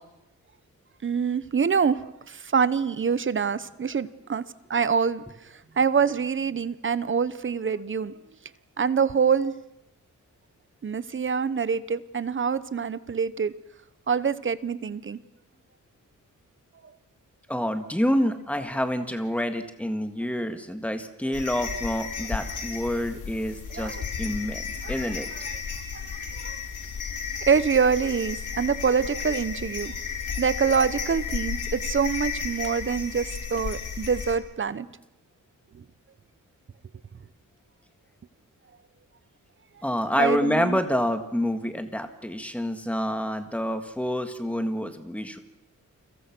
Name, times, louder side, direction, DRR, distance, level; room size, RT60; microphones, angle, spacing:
voice 1, 1.0-2.0 2.3-4.4 4.7-5.2 5.8-8.1 8.8-9.5 10.8-13.5 14.1-15.2 23.7-24.0 24.8-25.1 26.4-26.6 27.5-29.9 30.4-34.9 40.2-40.8, right 6 dB, 40° right, 16 dB, 0.9 m, -25 dB
voice 2, 17.5-25.3 39.8-45.4, equal, 5° left, 7 dB, 1.8 m, -27 dB
sound 1, 21.3-34.4, left 6 dB, 65° left, 3.4 m, -33 dB
29.5 x 23.5 x 6.1 m, 0.91 s
wide cardioid pair, 175°, 33 cm